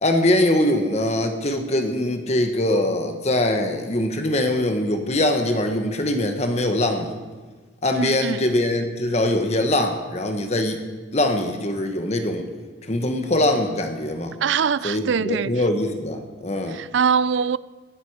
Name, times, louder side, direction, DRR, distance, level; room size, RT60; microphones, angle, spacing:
voice 1, 0.0-7.2 7.8-10.8 11.1-12.5 12.8-14.3 14.8-16.8, left 1 dB, 35° left, 1.3 m, -22 dB
voice 2, 8.0-8.4 14.4-15.5 16.7-17.6, right 6 dB, 65° right, 0.4 m, -22 dB
19.0 x 13.0 x 4.9 m
head